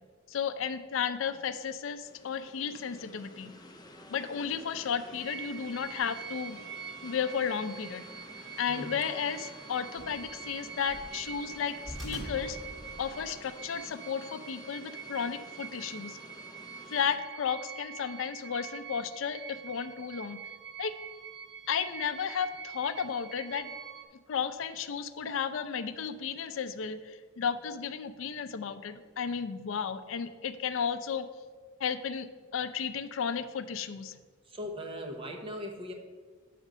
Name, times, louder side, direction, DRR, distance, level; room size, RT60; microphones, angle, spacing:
voice 1, 0.3-3.5 4.1-6.6 7.0-8.1 8.6-12.6 13.0-16.2 16.9-20.4 20.8-20.9 21.7-23.7 24.3-31.2 31.8-32.3 32.5-34.2, left 7 dB, 75° left, 11 dB, 0.4 m, -33 dB
sound 1, 2.0-17.2, left 1 dB, 20° left, 0.6 m, -51 dB
sound 2, 4.6-13.4, equal, ahead, 2.0 m, -48 dB
sound 3, 5.2-24.1, right 8 dB, 55° right, 0.6 m, -45 dB
voice 2, 34.5-35.9, left 1 dB, 25° right, 2 dB, 0.8 m, -39 dB
5.4 x 5.1 x 6.1 m, 1.5 s
head